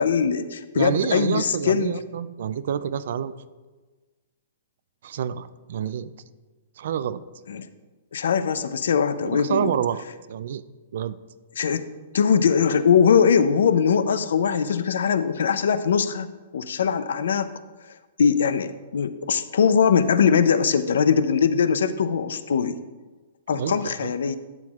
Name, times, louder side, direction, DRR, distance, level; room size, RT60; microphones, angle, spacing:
voice 1, 0.0-2.0 7.5-7.7 8.1-9.7 11.6-11.8 12.1-16.3 16.5-17.5 18.2-22.8 23.5-24.4, left 6 dB, 80° left, 13 dB, 0.5 m, -21 dB
voice 2, 0.7-3.3 5.0-6.1 6.8-7.2 9.2-10.0 10.3-10.6 10.9-11.2 23.5-24.1, right 9 dB, 60° right, 16 dB, 0.4 m, -28 dB
12.0 x 7.8 x 2.4 m, 1.3 s
hypercardioid pair, 165°, 0 cm